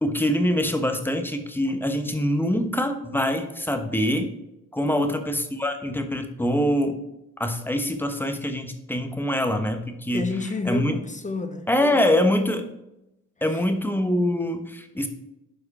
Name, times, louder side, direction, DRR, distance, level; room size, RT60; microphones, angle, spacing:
voice 1, 0.0-4.3 4.7-7.0 7.4-10.2 10.6-11.0 11.7-12.7 13.4-15.1, left 1 dB, 5° left, 1.1 m, -24 dB
voice 2, 10.1-11.7 13.5-13.6, left 3 dB, 25° left, 0.9 m, -31 dB
12.0 x 4.7 x 4.3 m
cardioid pair, 90°, 30 cm